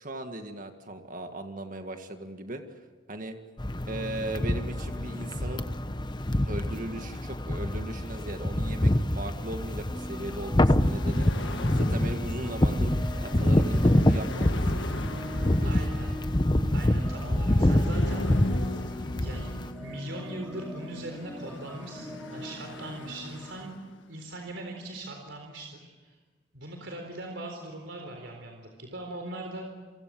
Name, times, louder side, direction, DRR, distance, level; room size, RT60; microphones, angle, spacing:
voice 1, 0.0-2.6 3.1-3.4 3.9-5.6 6.4-11.3 11.7-14.9 15.4-15.7, right 1 dB, 45° right, 6 dB, 1.8 m, -38 dB
sound 1, 3.6-19.7, left 1 dB, 25° left, 1.0 m, -26 dB
sound 2, 9.9-23.6, equal, ahead, 3.4 m, -42 dB
sound 3, 10.8-24.2, left 2 dB, 80° left, 1.6 m, -40 dB
voice 2, 15.6-16.2 16.7-18.3 19.2-19.5 19.8-23.8 24.1-26.2 26.5-29.7, right 1 dB, 80° right, 3 dB, 4.0 m, -40 dB
30.0 x 24.5 x 7.7 m, 1.4 s
head